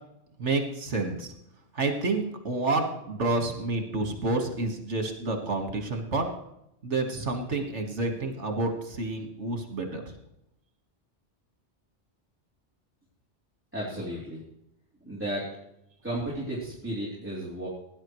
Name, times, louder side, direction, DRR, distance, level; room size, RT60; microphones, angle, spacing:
voice 1, 0.4-1.3 1.7-6.3 6.8-10.0, right 3 dB, 80° right, 4 dB, 2.0 m, -29 dB
voice 2, 13.7-14.4 15.0-15.5 16.0-17.7, right 1 dB, 10° right, -7 dB, 3.5 m, -33 dB
18.5 x 10.5 x 3.2 m, 0.80 s
omnidirectional pair, 1.2 m